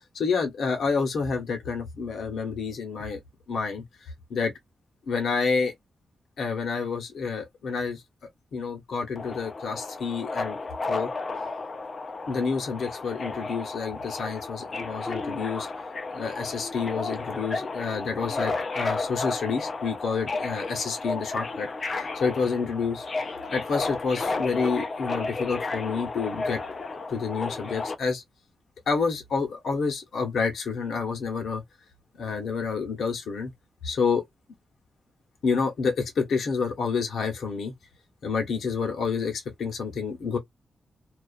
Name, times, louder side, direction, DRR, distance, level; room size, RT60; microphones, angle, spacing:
voice 1, 0.1-3.2 3.5-3.8 4.3-4.5 5.1-5.7 6.4-8.0 8.5-10.6 10.9-11.1 12.3-15.7 16.1-23.1 23.5-26.6 27.1-28.2 28.9-31.6 32.2-33.5 33.8-34.2 35.4-37.7 38.2-40.4, left 5 dB, 75° left, 0.9 m, -29 dB
Subway metro underground, 9.2-28.0, left 3 dB, 35° left, 0.5 m, -33 dB
2.3 x 2.3 x 2.4 m
wide cardioid pair, 130°, 0 cm